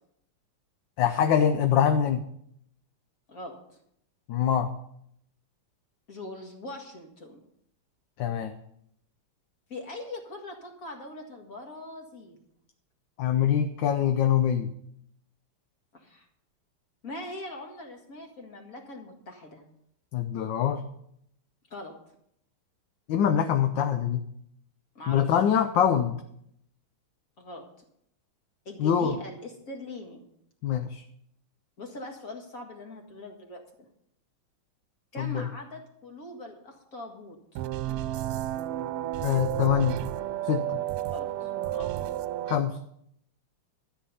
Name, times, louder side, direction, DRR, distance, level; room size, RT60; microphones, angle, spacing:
voice 1, 1.0-2.2 4.3-4.7 8.2-8.5 13.2-14.7 20.1-20.8 23.1-24.2 25.1-26.2 28.8-29.2 30.6-31.0 35.2-35.4 39.2-40.0 40.4-40.8 42.5-42.8, left 9 dB, 70° left, 8 dB, 1.3 m, -24 dB
voice 2, 3.3-3.8 6.1-7.4 9.7-12.4 15.9-16.3 17.0-19.6 21.7-22.0 25.0-25.6 27.4-27.7 28.7-30.2 31.8-33.6 35.1-37.6 41.0-41.9, left 2 dB, 40° left, 3 dB, 2.2 m, -42 dB
sound 1, 37.6-42.6, right 13 dB, 85° right, 1.5 m, -31 dB
13.0 x 8.8 x 5.6 m, 0.72 s
omnidirectional pair, 2.4 m